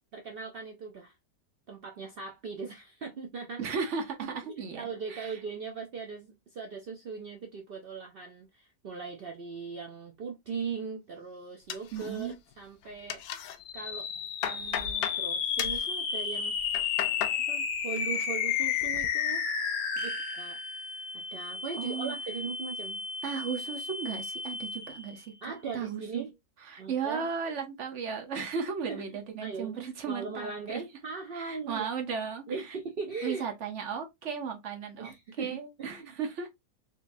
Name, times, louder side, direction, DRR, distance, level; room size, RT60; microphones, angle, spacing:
voice 1, 0.1-1.1 1.7-3.8 4.5-13.2 13.7-14.1 14.4-17.0 17.5-19.5 20.0-20.6 21.1-23.0 25.4-26.3 26.8-27.3 28.9-29.7 30.1-31.9 32.5-33.5 35.0-36.1, right 5 dB, 80° right, 0.5 m, -39 dB
voice 2, 3.6-5.4 11.9-12.3 21.8-22.2 23.2-26.3 26.6-30.8 31.3-32.8 33.2-36.5, right 6 dB, 50° right, 1.1 m, -35 dB
sound 1, 11.7-12.5 12.8-13.6 14.0-15.2 15.6-15.9 16.5-17.4 17.8-18.3 18.6-19.1, left 9 dB, 70° left, 1.0 m, -36 dB
sound 2, 13.6-25.2, left 7 dB, 90° left, 1.3 m, -33 dB
3.8 x 2.9 x 2.5 m
omnidirectional pair, 1.7 m